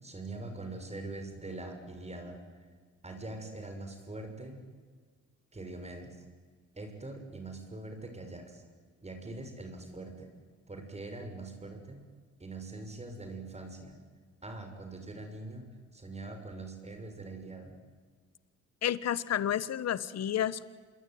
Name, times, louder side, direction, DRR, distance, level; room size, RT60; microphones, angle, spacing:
voice 1, 0.0-2.4 3.0-4.6 5.5-6.2 6.7-8.6 9.0-10.3 10.7-12.0 12.4-14.0 14.4-15.7 15.9-17.7, right 2 dB, 20° right, 5 dB, 6.5 m, -43 dB
voice 2, 18.8-20.6, left 10 dB, 60° left, 16 dB, 1.2 m, -30 dB
27.5 x 23.0 x 9.5 m, 1.5 s
cardioid pair, 90°, 30 cm